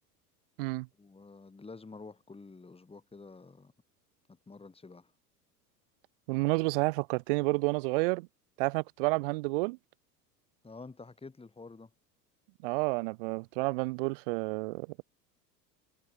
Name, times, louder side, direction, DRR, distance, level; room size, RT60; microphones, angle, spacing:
voice 1, 1.0-3.7 4.3-5.1 10.6-11.9, left 3 dB, 10° left, 3.4 m, -49 dB
voice 2, 6.3-8.3 8.6-9.8 12.6-14.9, right 26 dB, 40° right, 0.4 m, -30 dB
figure-of-eight pair, 75°, 49 cm